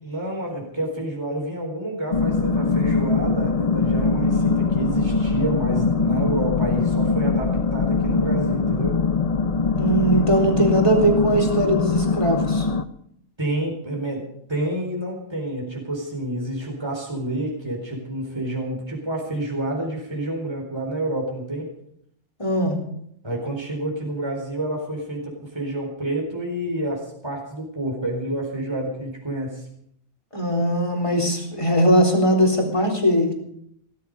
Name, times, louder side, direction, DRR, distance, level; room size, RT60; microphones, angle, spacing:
voice 1, 0.0-9.0 13.4-14.2 14.5-21.7 23.2-29.7, right 1 dB, 15° right, 0 dB, 4.3 m, -29 dB
sound 1, 2.1-12.8, left 4 dB, 35° left, 0.6 m, -22 dB
voice 2, 9.8-12.7 22.4-22.8 30.3-33.3, right 1 dB, 20° left, 3 dB, 3.7 m, -20 dB
18.0 x 14.0 x 5.4 m, 0.71 s
omnidirectional pair, 1.5 m